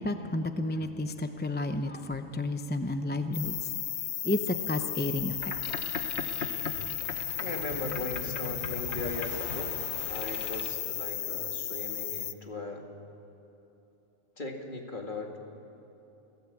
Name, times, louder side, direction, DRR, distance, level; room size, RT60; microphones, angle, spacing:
voice 1, 0.0-3.7 4.2-5.5, left 2 dB, 10° left, 7 dB, 0.5 m, -31 dB
sound 1, 3.3-12.3, left 9 dB, 80° left, 1.2 m, -35 dB
Boat Water vehicle, 5.3-10.7, left 4 dB, 60° left, 1.6 m, -39 dB
voice 2, 7.4-9.7 10.1-12.8 14.4-15.4, left 2 dB, 40° left, 2 dB, 2.4 m, -38 dB
29.0 x 16.0 x 8.5 m, 2.9 s
omnidirectional pair, 1.4 m